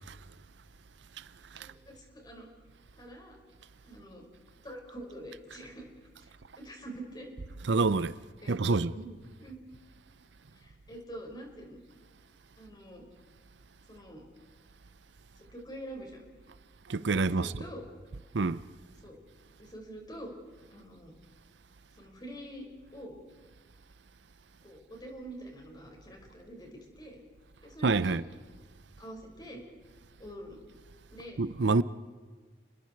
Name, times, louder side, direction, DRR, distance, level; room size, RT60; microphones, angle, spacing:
voice 1, 1.6-2.5 3.0-3.4 3.8-4.2 4.6-5.9 6.2-7.3 8.4-9.1 9.4-9.6 10.5-11.8 12.6-13.0 13.9-14.2 15.4-16.2 17.1-17.8 19.0-19.2 19.6-20.3 20.7-21.1 21.9-22.7 22.9-23.2 24.6-27.2 27.6-28.2 29.0-29.6 30.2-30.6 31.1-31.4, right 1 dB, 25° left, 5.7 m, -46 dB
voice 2, 7.7-8.2 8.5-8.9 16.9-17.6 18.3-18.6 27.8-28.2 31.4-31.8, right 3 dB, 85° right, 0.7 m, -27 dB
30.0 x 21.5 x 4.7 m
head